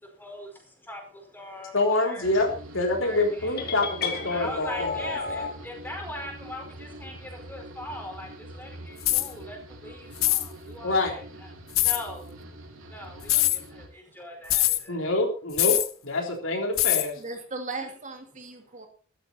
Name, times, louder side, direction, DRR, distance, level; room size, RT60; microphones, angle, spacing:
voice 1, 0.0-1.8 2.0-2.3 3.0-3.6 4.3-11.5 11.8-12.3 12.9-15.0 17.8-17.9, left 1 dB, 10° left, 2 dB, 4.8 m, -41 dB
voice 2, 1.7-4.9 10.8-11.2 14.9-17.1, left 2 dB, 70° left, 2 dB, 3.7 m, -26 dB
sound 1, 2.2-13.9, right 1 dB, 85° right, 3.4 m, -44 dB
sound 2, 3.6-5.6, left 4 dB, 50° left, 2.5 m, -32 dB
voice 3, 7.1-7.5 9.1-9.2 9.8-10.0 12.9-13.0 13.9-14.1 17.2-18.9, right 3 dB, 40° right, 4 dB, 2.4 m, -39 dB
sound 3, 9.0-9.3 10.2-10.5 11.8-12.0 13.2-13.6 14.5-14.8 15.6-15.9 16.8-17.1, left 15 dB, 90° left, 1.0 m, -22 dB
13.5 x 13.0 x 4.2 m, 0.38 s
head